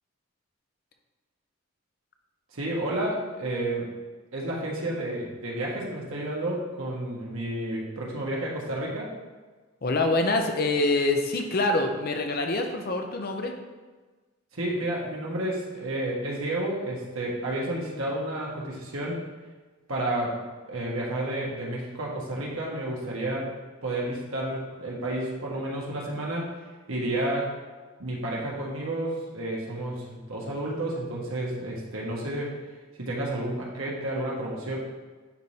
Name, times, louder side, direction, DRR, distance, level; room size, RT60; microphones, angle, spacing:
voice 1, 2.5-3.9 4.3-9.1 14.5-19.2 19.9-20.4 20.7-23.5 23.8-26.5 26.9-27.5 28.0-32.6 33.0-34.7, right 1 dB, 80° right, -4 dB, 1.4 m, -31 dB
voice 2, 9.8-13.5, left 2 dB, 45° left, 4 dB, 0.6 m, -25 dB
10.0 x 3.4 x 2.8 m, 1.3 s
head